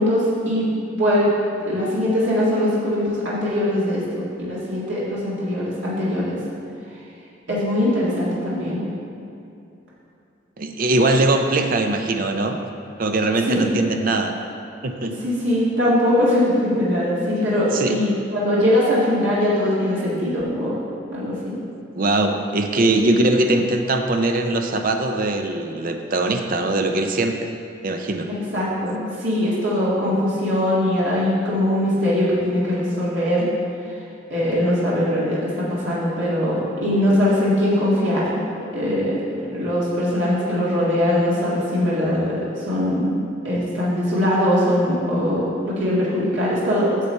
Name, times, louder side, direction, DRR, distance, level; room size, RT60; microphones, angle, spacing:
voice 1, 0.0-1.4 1.7-6.4 7.5-8.8 13.4-13.7 15.2-20.8 21.1-21.6 23.0-23.3 28.5-33.5 34.3-38.4 38.7-39.2 39.5-47.1, left 1 dB, 85° right, -8 dB, 1.9 m, -21 dB
voice 2, 10.6-12.6 13.0-14.3 14.8-15.2 17.7-17.9 22.0-27.5 27.8-28.3, right 2 dB, 50° right, 5 dB, 0.6 m, -21 dB
8.2 x 6.9 x 4.4 m, 2.6 s
head